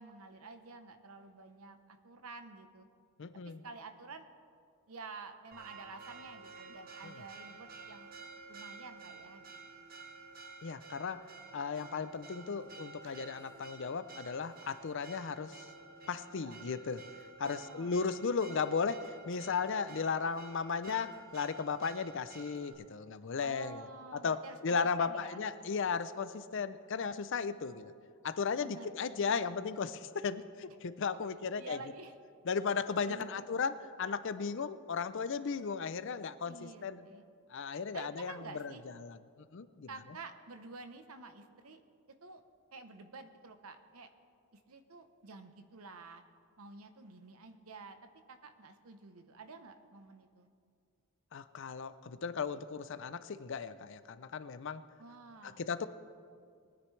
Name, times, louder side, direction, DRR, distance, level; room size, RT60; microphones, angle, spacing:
voice 1, 0.0-2.9 3.4-4.3 4.9-8.1 8.5-9.8 16.3-16.6 17.4-18.4 23.4-25.4 28.6-29.2 31.5-32.2 33.0-33.5 36.4-37.3 37.9-38.8 39.9-41.8 42.2-42.4 42.7-44.1 44.5-46.2 46.6-48.0 48.3-50.5 55.0-55.6, right 3 dB, 75° right, 9 dB, 0.9 m, -50 dB
voice 2, 3.2-3.6 7.0-7.1 10.6-11.2 11.5-15.6 16.1-17.0 17.4-23.9 24.1-27.9 28.2-31.8 32.5-37.0 37.5-38.7 39.0-39.2 39.5-39.9 51.3-54.8 55.4-55.9, left 5 dB, 55° left, 13 dB, 0.5 m, -36 dB
Church bell, 5.5-22.7, right 4 dB, 40° right, 1.0 m, -52 dB
22.0 x 9.8 x 3.3 m, 2.3 s
head